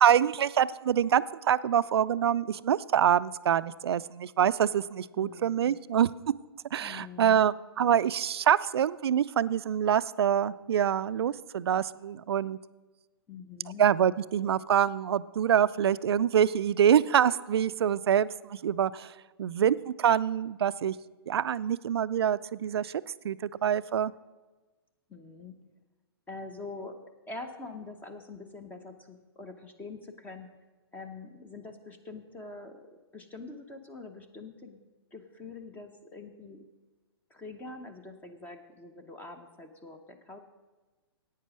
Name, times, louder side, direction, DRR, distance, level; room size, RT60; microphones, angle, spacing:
voice 1, 0.0-6.3 6.7-12.6 13.8-19.1 19.4-20.9 21.3-22.9 23.2-24.1, right 9 dB, 70° right, 17 dB, 0.4 m, -25 dB
voice 2, 5.1-5.7 6.8-7.4 13.3-13.9 25.1-25.6 26.3-30.5 30.9-36.7 37.3-40.4, left 3 dB, 10° left, 8 dB, 0.8 m, -45 dB
10.5 x 8.8 x 6.2 m, 1.2 s
hypercardioid pair, 130°, 14 cm